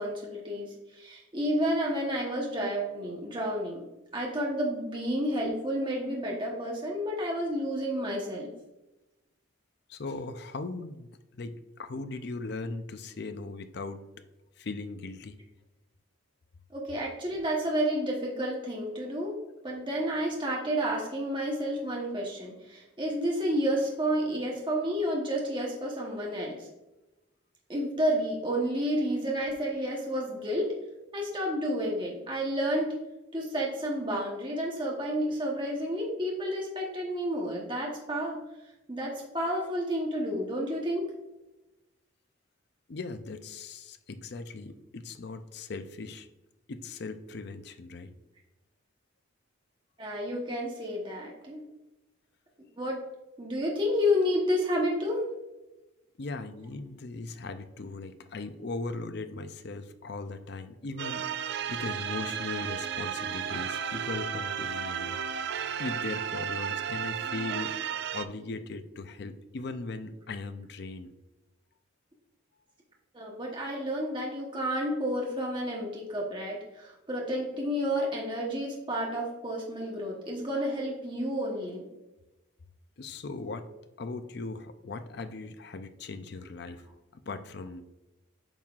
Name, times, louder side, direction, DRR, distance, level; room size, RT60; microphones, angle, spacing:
voice 1, 0.0-3.8 4.1-8.5 16.7-19.3 19.6-26.7 27.7-30.7 31.1-33.0 33.3-38.4 38.9-41.0 50.0-51.7 52.8-53.0 53.4-55.3 73.1-81.9, equal, 25° right, -2 dB, 1.0 m, -30 dB
voice 2, 9.9-14.0 14.6-15.4 42.9-46.3 46.7-48.1 56.2-65.2 65.8-67.7 68.1-71.1 83.0-83.7 84.0-86.8 87.1-87.8, left 3 dB, 55° left, 10 dB, 0.5 m, -38 dB
sound 1, 61.0-68.2, right 8 dB, 55° right, 0.3 m, -33 dB
8.9 x 5.6 x 2.4 m, 1.0 s
head